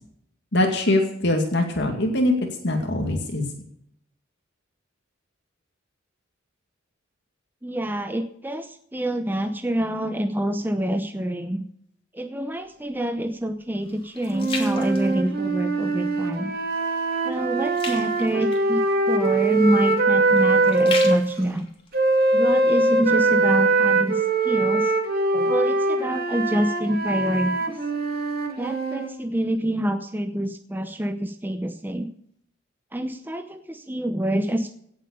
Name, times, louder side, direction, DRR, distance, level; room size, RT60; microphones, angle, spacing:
voice 1, 0.5-2.3 2.6-3.4, left 1 dB, 60° left, 2 dB, 2.2 m, -22 dB
voice 2, 7.6-11.6 12.1-16.5 17.2-21.7 22.3-24.9 25.3-27.7 28.6-32.1 32.9-34.7, right 1 dB, 10° right, 8 dB, 0.7 m, -26 dB
sound 1, 12.6-15.9 16.3-16.6 17.0-22.9 23.4-23.5, left 4 dB, 30° left, 2.9 m, -37 dB
sound 2, 14.3-21.2 21.9-29.1, right 3 dB, 50° right, 2.6 m, -22 dB
17.0 x 7.7 x 6.9 m, 0.72 s
head